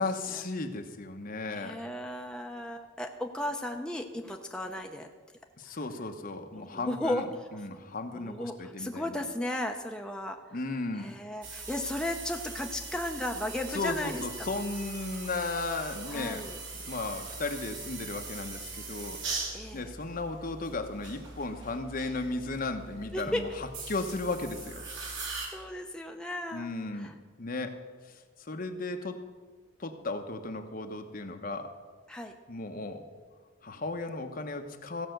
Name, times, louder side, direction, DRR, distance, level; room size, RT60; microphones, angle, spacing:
voice 1, 0.0-1.8 5.6-9.2 10.5-11.1 13.7-16.5 16.9-19.2 19.7-24.9 26.5-27.1 27.4-27.8 28.1-28.2 28.5-29.2 29.8-31.7 32.5-33.0 33.6-35.1, left 3 dB, 50° left, 6 dB, 1.0 m, -35 dB
voice 2, 1.5-5.1 6.6-7.5 8.1-10.4 11.0-14.5 16.1-16.6 19.5-19.9 23.1-23.4 25.0-27.1 28.5-28.6 32.1-32.3, left 1 dB, 5° left, 3 dB, 0.6 m, -35 dB
sound 1, 11.4-25.5, right 3 dB, 75° right, 2.7 m, -41 dB
15.5 x 5.7 x 7.8 m, 1.5 s
head